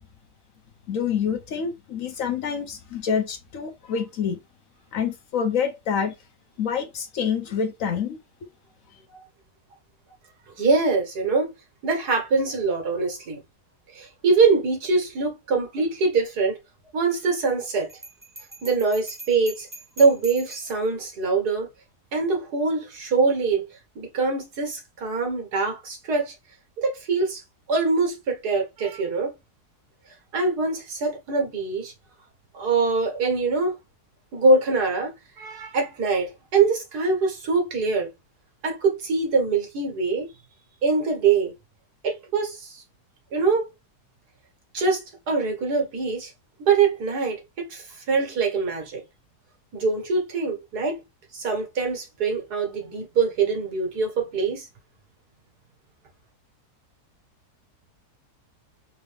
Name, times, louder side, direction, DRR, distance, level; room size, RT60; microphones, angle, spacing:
voice 1, 0.9-4.4 4.9-6.1 6.6-8.2, left 7 dB, 60° left, 1.0 m, -27 dB
voice 2, 10.6-11.5 11.8-13.4 13.9-16.6 16.9-17.9 18.6-19.7 20.0-21.7 22.1-23.6 24.0-26.3 26.8-27.4 27.7-29.3 30.3-31.9 32.5-33.7 34.3-35.1 35.4-38.1 38.6-40.3 40.8-41.5 42.0-42.8 43.3-43.7 44.7-46.3 46.7-49.0 49.7-51.0 51.3-54.7, right 4 dB, 75° right, 1.9 m, -23 dB
Bell, 17.9-20.9, right 2 dB, 15° right, 1.0 m, -42 dB
4.0 x 2.8 x 3.3 m
omnidirectional pair, 1.7 m